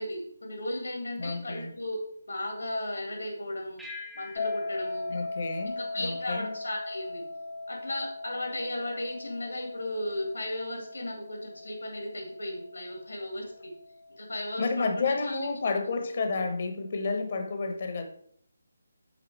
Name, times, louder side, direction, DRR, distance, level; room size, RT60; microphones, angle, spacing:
voice 1, 0.0-2.0 2.2-3.8 4.1-5.1 5.8-7.2 7.7-13.7 14.2-15.4, left 1 dB, 75° left, 1 dB, 2.0 m, -35 dB
voice 2, 1.2-1.7 5.1-6.5 14.6-18.0, left 4 dB, 45° left, 6 dB, 1.1 m, -31 dB
sound 1, 3.8-6.6, left 3 dB, ahead, 0.8 m, -47 dB
sound 2, 4.4-15.3, left 2 dB, 25° left, 0.8 m, -39 dB
8.3 x 3.7 x 4.7 m, 0.64 s
figure-of-eight pair, 150°, 0 cm